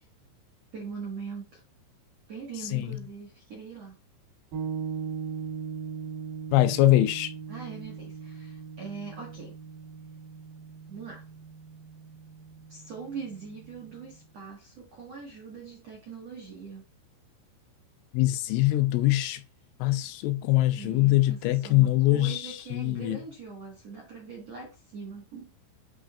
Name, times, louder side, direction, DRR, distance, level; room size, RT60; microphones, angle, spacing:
voice 1, 0.7-1.6 2.3-3.9 7.5-9.5 10.9-11.2 12.7-16.8 20.8-25.5, right 5 dB, 85° right, 1.4 m, -42 dB
sound 1, 4.5-14.2, right 6 dB, 60° right, 2.5 m, -39 dB
voice 2, 6.5-7.3 18.1-19.4 19.8-23.2, left 16 dB, 85° left, 3.0 m, -23 dB
8.8 x 5.0 x 2.4 m
omnidirectional pair, 5.8 m